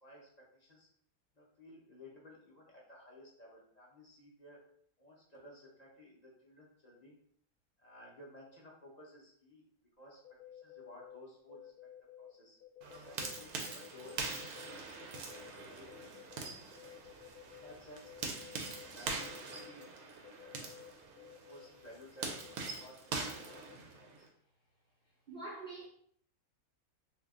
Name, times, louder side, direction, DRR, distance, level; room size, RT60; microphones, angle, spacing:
voice 1, 0.0-0.9 1.4-4.6 5.0-7.2 7.8-9.6 10.0-10.2 10.5-11.9 12.2-12.6 13.0-17.0 17.4-20.7 21.2-24.3, left 1 dB, 40° left, -4 dB, 0.6 m, -57 dB
sound 1, 10.2-12.3 12.6-16.4 16.8-17.7 18.0-19.9 20.2-23.8, left 11 dB, 85° left, 1.1 m, -54 dB
sound 2, 12.8-24.3, right 4 dB, 85° right, 1.1 m, -43 dB
voice 2, 25.3-25.8, right 2 dB, 55° right, -6 dB, 0.6 m, -44 dB
2.8 x 2.4 x 3.6 m, 0.63 s
omnidirectional pair, 1.6 m